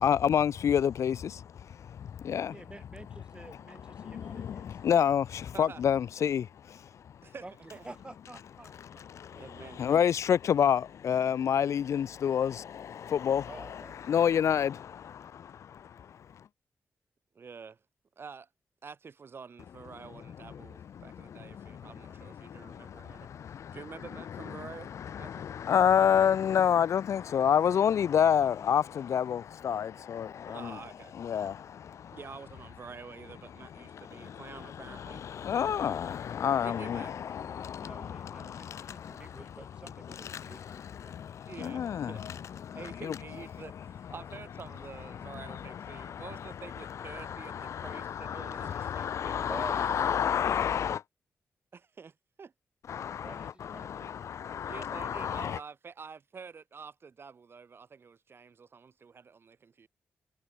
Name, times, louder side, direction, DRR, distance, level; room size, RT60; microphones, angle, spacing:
voice 1, 0.0-2.7 3.5-7.2 8.8-16.4 20.5-23.8 24.3-30.8 31.1-32.2 33.8-43.2 43.5-43.7 45.1-51.0 52.9-55.6, left 8 dB, 75° left, 0.5 m, -30 dB
voice 2, 2.5-4.8 7.4-7.5 7.8-9.1 13.5-14.0 37.8-41.1 49.5-50.1 53.0-54.1, right 2 dB, 20° right, 1.2 m, -48 dB
voice 3, 9.3-10.1 17.3-17.8 18.2-18.5 18.8-25.4 30.3-31.1 32.1-35.2 36.6-37.3 41.5-42.3 42.7-49.3 51.7-52.5 54.6-59.9, right 5 dB, 50° right, 2.7 m, -48 dB
wide cardioid pair, 115°, 5 cm